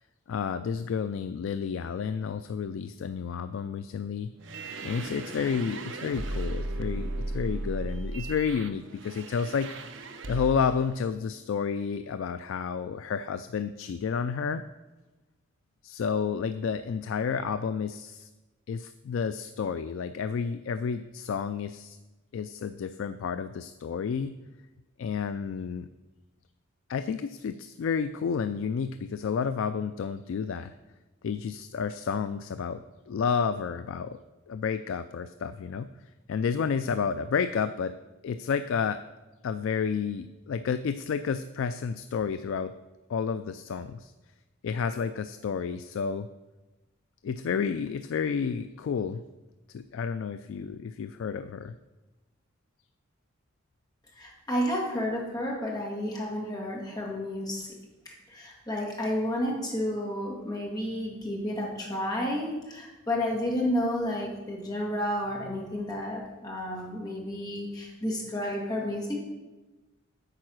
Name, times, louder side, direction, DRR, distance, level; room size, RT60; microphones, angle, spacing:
voice 1, 0.3-4.3 4.8-9.7 10.3-14.6 15.8-18.3 18.7-22.0 22.3-24.3 25.0-25.9 26.9-30.7 31.2-34.2 34.5-35.9 36.3-38.0 38.2-39.0 39.4-42.7 43.1-44.1 44.6-46.3 47.2-49.2 49.7-51.7, left 6 dB, 70° left, 11 dB, 0.3 m, -30 dB
sound 1, 4.4-10.8, right 2 dB, 60° right, 0.7 m, -36 dB
voice 2, 54.2-57.7 58.3-69.2, left 1 dB, 20° left, -2 dB, 1.8 m, -31 dB
8.8 x 4.7 x 6.3 m, 1.1 s
head